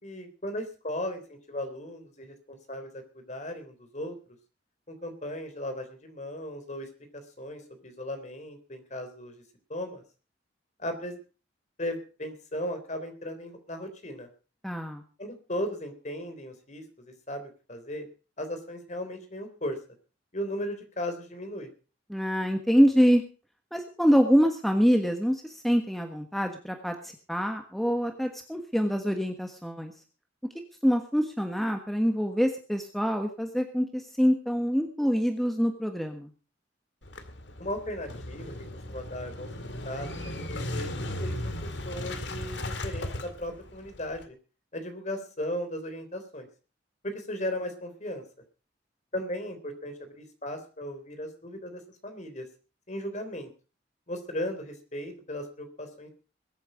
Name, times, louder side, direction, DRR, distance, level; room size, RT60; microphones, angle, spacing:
voice 1, 0.0-4.2 4.9-6.9 7.1-9.3 9.7-10.0 10.8-11.2 11.8-14.3 15.2-18.1 18.4-19.8 20.3-21.7 37.6-38.5 38.9-39.5 39.8-44.3 44.7-46.5 47.0-48.2 49.1-52.5 52.9-53.5 54.1-56.1, left 1 dB, 40° left, 8 dB, 3.4 m, -36 dB
voice 2, 14.6-15.0 22.1-23.2 23.7-29.9 30.8-36.3, equal, ahead, 5 dB, 1.4 m, -25 dB
Motorcycle / Engine starting, 37.0-44.2, left 1 dB, 70° left, 2.1 m, -36 dB
21.5 x 9.0 x 5.1 m, 0.36 s
head